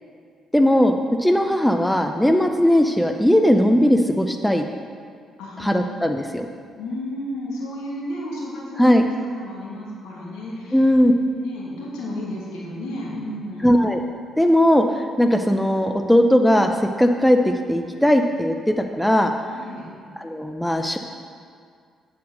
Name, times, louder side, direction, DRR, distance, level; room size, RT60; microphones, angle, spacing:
voice 1, 0.5-4.6 5.6-6.5 8.8-9.0 10.7-11.1 13.6-14.0 14.4-14.9 15.2-17.4 17.7-19.3 20.2-21.0, equal, 5° left, 5 dB, 0.7 m, -18 dB
voice 2, 5.4-6.0 6.8-8.9 9.3-10.8 11.3-13.7 19.5-19.8, left 1 dB, 70° left, -5 dB, 2.5 m, -33 dB
8.7 x 7.6 x 6.5 m, 2.1 s
figure-of-eight pair, 40°, 0 cm